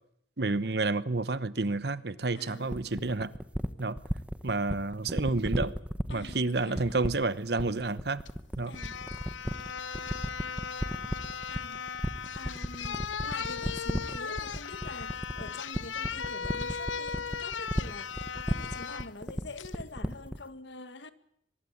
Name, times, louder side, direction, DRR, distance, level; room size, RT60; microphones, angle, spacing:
voice 1, 0.4-3.3 3.8-4.0 4.4-5.8 6.1-8.2 8.6-8.8, right 3 dB, 60° right, 1.0 m, -30 dB
voice 2, 2.3-3.1 6.1-7.1 8.7-9.0 11.5-21.1, left 2 dB, 70° left, 1.8 m, -46 dB
sound 1, 2.7-20.5, equal, 5° right, 1.1 m, -33 dB
sound 2, 8.3-8.4 8.7-19.1 19.6-19.8, left 6 dB, 90° left, 1.0 m, -37 dB
23.5 x 21.5 x 8.6 m
head